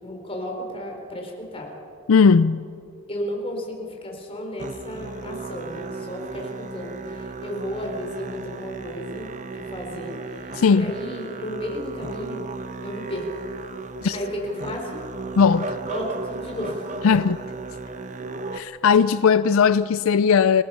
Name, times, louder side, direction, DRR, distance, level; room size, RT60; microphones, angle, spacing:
voice 1, 0.0-1.7 3.1-12.5 12.8-13.4 14.1-15.0 15.9-17.0, left 1 dB, 25° left, 4.0 m, -33 dB
voice 2, 2.1-2.6 10.6-10.9 14.0-14.2 15.4-15.8 17.0-17.4 18.5-20.6, left 6 dB, 75° left, 0.4 m, -18 dB
Musical instrument, 4.6-18.6, right 3 dB, 35° right, 0.9 m, -35 dB
30.0 x 18.0 x 5.6 m
head